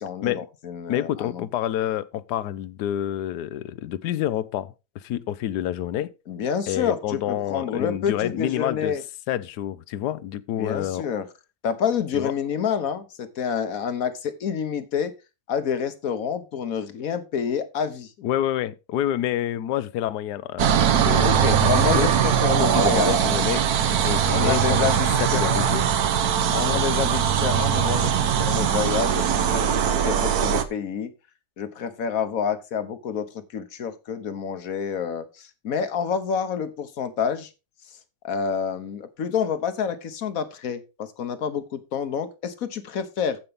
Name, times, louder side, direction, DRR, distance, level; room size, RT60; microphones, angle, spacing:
voice 1, 0.0-1.5 6.3-9.0 10.6-11.3 11.6-15.1 15.5-18.1 21.2-23.2 24.3-25.7 26.5-31.1 31.6-37.5 38.2-43.4, left 7 dB, 60° left, 1.4 m, -28 dB
voice 2, 0.9-6.1 6.7-9.0 9.3-11.1 12.1-12.3 18.2-22.1 22.7-23.7 24.0-24.9 25.2-25.8 26.5-26.8, left 11 dB, 75° left, 1.2 m, -28 dB
sound 1, 20.6-30.6, right 9 dB, 65° right, 1.3 m, -21 dB
15.0 x 5.5 x 3.5 m
omnidirectional pair, 1.8 m